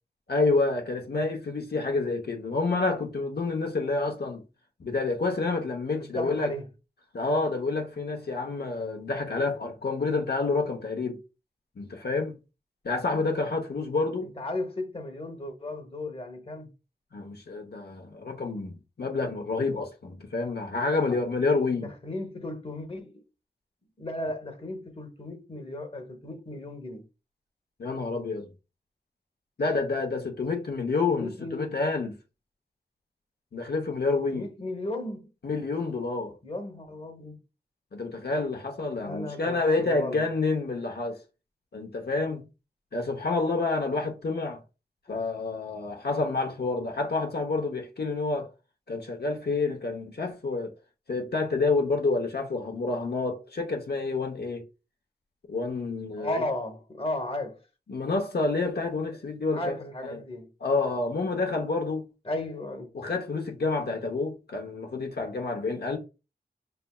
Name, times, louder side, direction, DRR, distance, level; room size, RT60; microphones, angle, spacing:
voice 1, 0.3-4.4 4.8-6.5 7.1-11.2 11.8-12.4 12.8-14.3 17.1-21.9 27.8-28.5 29.6-32.1 33.5-34.5 35.4-36.3 37.9-41.2 41.7-42.5 42.9-44.6 45.1-48.5 48.9-50.7 51.1-54.6 55.5-56.4 57.9-59.7 60.1-60.2 60.6-62.1 62.9-66.0, left 3 dB, 75° left, 0.9 m, -28 dB
voice 2, 5.9-6.7 14.2-16.7 21.0-21.2 21.7-23.1 24.0-27.1 31.1-31.8 34.3-35.3 36.4-37.4 38.9-40.2 56.2-57.6 59.5-60.5 62.2-62.9, left 1 dB, 35° left, 1.0 m, -35 dB
5.3 x 3.4 x 2.3 m
wide cardioid pair, 75°, 17 cm